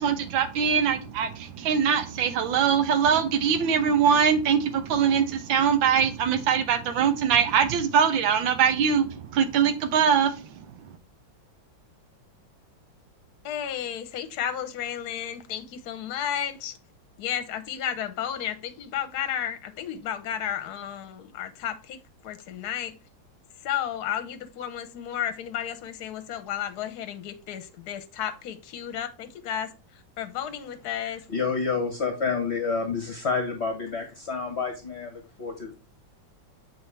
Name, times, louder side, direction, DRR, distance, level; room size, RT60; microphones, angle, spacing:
voice 1, 0.0-10.3, right 7 dB, 90° right, 1.6 m, -22 dB
voice 2, 13.4-16.7 17.2-22.0 22.2-23.0 23.6-31.2, left 10 dB, 60° left, 1.2 m, -33 dB
voice 3, 31.3-35.7, left 5 dB, 40° left, 1.1 m, -29 dB
6.9 x 4.3 x 3.2 m
omnidirectional pair, 2.1 m